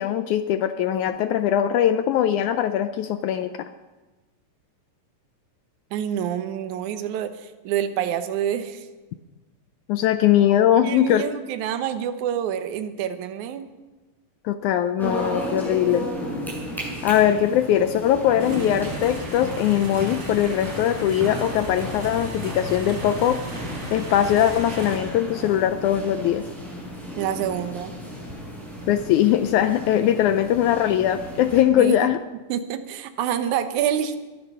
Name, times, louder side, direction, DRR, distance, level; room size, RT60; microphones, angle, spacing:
voice 1, 0.0-3.5 9.9-11.2 14.4-16.1 17.0-23.4 23.9-26.4 28.9-32.2, left 11 dB, 80° left, 10 dB, 1.8 m, -21 dB
voice 2, 5.9-8.9 10.8-13.7 27.2-27.9 31.8-32.1 32.5-34.2, right 9 dB, 70° right, 9 dB, 2.2 m, -27 dB
sound 1, 15.0-31.6, equal, ahead, 7.2 m, -34 dB
sound 2, 18.4-25.0, right 1 dB, 45° right, 4.2 m, -37 dB
22.5 x 11.5 x 5.5 m, 1.2 s
omnidirectional pair, 3.9 m